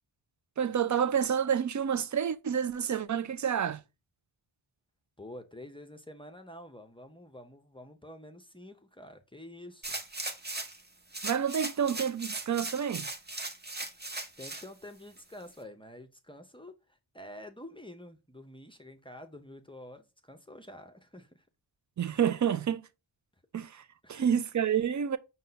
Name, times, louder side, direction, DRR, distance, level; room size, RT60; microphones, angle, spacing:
voice 1, 0.6-3.8 11.2-13.1 22.0-22.9 23.5-23.8 24.1-25.2, right 8 dB, 40° right, 0.4 m, -29 dB
voice 2, 5.2-10.0 14.4-16.8 17.1-21.4 24.0-24.3, left 1 dB, 10° left, 0.6 m, -48 dB
sound 1, 9.8-10.8 11.1-14.7 15.2-15.3, right 2 dB, 20° right, 0.9 m, -38 dB
5.3 x 2.2 x 3.9 m
wide cardioid pair, 50°, 49 cm